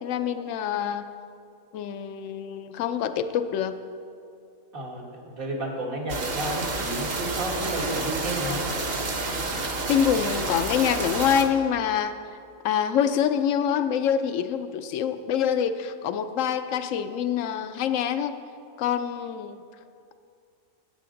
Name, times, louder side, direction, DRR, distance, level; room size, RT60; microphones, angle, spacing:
voice 1, 0.0-1.1 1.7-3.8 9.9-12.2 12.6-18.4 18.8-19.6, left 8 dB, 70° left, 10 dB, 0.9 m, -25 dB
voice 2, 4.7-8.7, right 1 dB, 75° right, -2 dB, 2.1 m, -32 dB
sound 1, 6.1-11.4, right 3 dB, 50° right, 1.1 m, -29 dB
14.5 x 8.4 x 3.8 m, 2.4 s
omnidirectional pair, 1.4 m